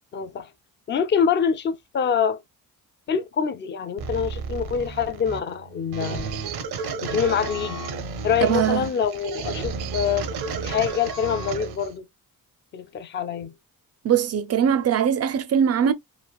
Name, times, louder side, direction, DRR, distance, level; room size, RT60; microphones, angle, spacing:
voice 1, 0.1-0.5 0.9-2.4 3.1-6.3 7.0-7.8 8.2-10.3 10.6-12.1 12.7-13.5, left 7 dB, 30° left, 0.4 m, -25 dB
sound 1, 4.0-11.9, right 4 dB, 85° right, 0.7 m, -32 dB
voice 2, 8.4-8.9 14.0-15.9, right 8 dB, 45° right, 0.4 m, -21 dB
3.2 x 2.3 x 2.2 m
cardioid pair, 95°, 38 cm